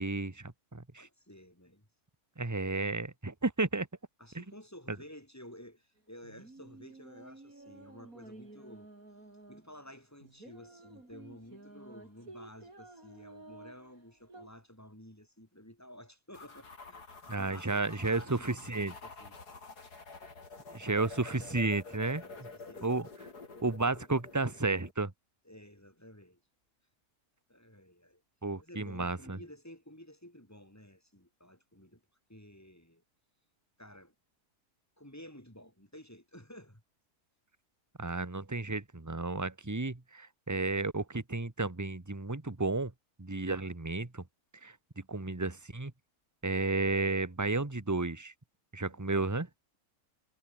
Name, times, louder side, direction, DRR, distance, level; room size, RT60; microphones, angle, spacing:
voice 1, 0.0-1.1 2.4-3.9 4.3-4.4 17.3-18.9 20.7-22.2 22.8-23.1 23.6-25.1 28.4-29.4 38.0-42.9 43.2-44.2 44.6-44.7 45.1-45.9 46.4-48.3 48.7-49.5, right 3 dB, 10° right, 1.4 m, -32 dB
voice 2, 1.0-1.9 4.2-8.9 9.5-19.4 22.1-22.9 25.4-26.4 27.5-28.2 28.6-32.0 32.3-33.0 33.8-34.1 35.0-36.8 48.9-49.0, equal, 10° left, 5.3 m, -53 dB
sound 1, 6.0-14.5, right 2 dB, 60° right, 6.3 m, -53 dB
sound 2, 16.3-24.9, left 4 dB, 90° left, 4.0 m, -49 dB
omnidirectional pair, 1.6 m